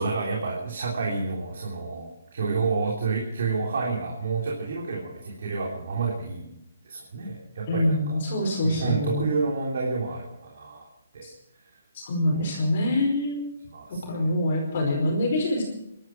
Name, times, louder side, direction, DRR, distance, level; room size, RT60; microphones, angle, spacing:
voice 1, 0.0-8.2 8.6-10.8 11.1-11.3 12.3-12.4 13.7-14.2, right 4 dB, 55° right, -2 dB, 3.4 m, -29 dB
voice 2, 7.7-9.3 11.2-11.3 11.9-13.5 13.9-15.6, left 1 dB, 40° left, -1 dB, 4.9 m, -25 dB
24.0 x 12.5 x 4.7 m, 0.82 s
hypercardioid pair, 175°, 0 cm